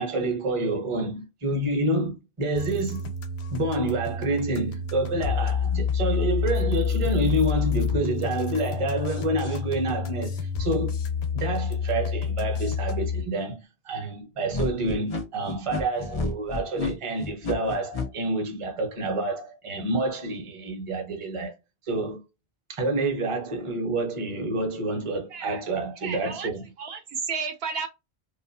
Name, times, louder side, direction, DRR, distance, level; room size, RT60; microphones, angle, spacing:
voice 1, 0.0-3.1 3.5-11.0 11.3-21.5 21.8-22.2 22.7-26.6, right 2 dB, 35° right, 0.7 m, -28 dB
sound 1, 2.6-13.2, left 6 dB, 85° left, 0.8 m, -28 dB
sound 2, 14.5-18.1, left 3 dB, 45° left, 0.4 m, -30 dB
voice 2, 26.0-26.5 26.8-27.9, right 5 dB, 75° right, 0.8 m, -32 dB
2.6 x 2.3 x 2.6 m
omnidirectional pair, 1.1 m